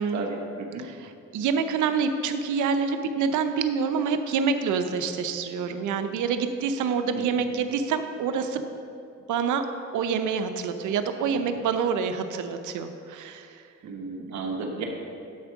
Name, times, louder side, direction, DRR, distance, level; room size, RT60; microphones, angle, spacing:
voice 1, 0.1-0.9 7.1-7.4 11.3-11.6 13.8-14.8, right 3 dB, 65° right, 1 dB, 1.4 m, -34 dB
voice 2, 0.8-8.6 9.3-9.7 9.9-13.6, right 6 dB, 80° right, 8 dB, 0.7 m, -27 dB
11.0 x 4.5 x 6.0 m, 2.6 s
cardioid pair, 90°, 30 cm